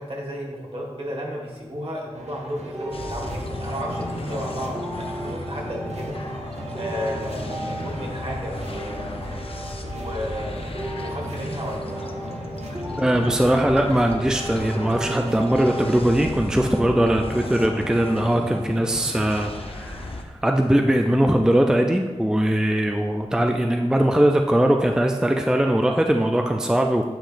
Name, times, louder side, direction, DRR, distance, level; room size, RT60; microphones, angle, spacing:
voice 1, 0.0-9.4 9.9-12.0, equal, 60° right, -2 dB, 1.8 m, -33 dB
sound 1, 2.1-16.4, right 2 dB, 75° right, 0.8 m, -41 dB
sound 2, 2.7-18.7, right 1 dB, 25° right, 1.5 m, -37 dB
sound 3, 2.9-20.2, left 2 dB, 55° left, 0.7 m, -35 dB
voice 2, 13.0-27.1, right 1 dB, 5° right, 3 dB, 0.4 m, -20 dB
9.0 x 4.8 x 2.6 m, 1.3 s
cardioid pair, 40°, 11 cm